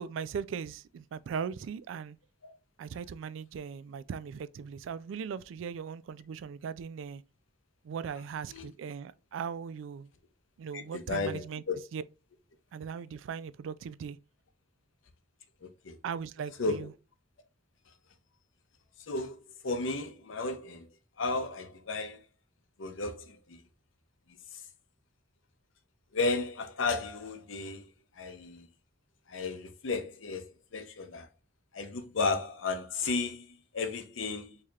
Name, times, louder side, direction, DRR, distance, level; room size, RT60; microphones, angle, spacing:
voice 1, 0.0-2.2 2.8-7.2 7.8-10.1 10.6-11.6 11.9-12.0 12.7-14.2 16.0-16.9, right 6 dB, 75° right, 0.3 m, -39 dB
voice 2, 10.7-11.8 15.6-16.0 16.6-16.9 19.1-20.9 21.2-22.2 22.8-23.6 26.1-27.9 28.2-28.7 29.3-31.3 31.7-34.6, left 3 dB, 80° left, 0.7 m, -34 dB
4.8 x 2.8 x 2.3 m
head